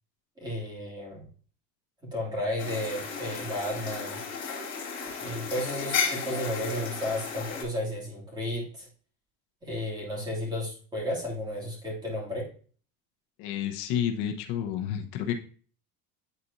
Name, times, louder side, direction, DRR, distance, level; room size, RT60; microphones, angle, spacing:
voice 1, 0.4-1.3 2.0-4.2 5.2-8.9 9.6-12.5, left 1 dB, 15° right, -3 dB, 2.7 m, -33 dB
sound 1, 2.6-7.6, left 5 dB, 35° left, 3.0 m, -34 dB
voice 2, 13.4-15.3, left 9 dB, 65° left, 4 dB, 1.0 m, -30 dB
9.5 x 4.2 x 2.7 m, 0.42 s
cardioid pair, 150°, 32 cm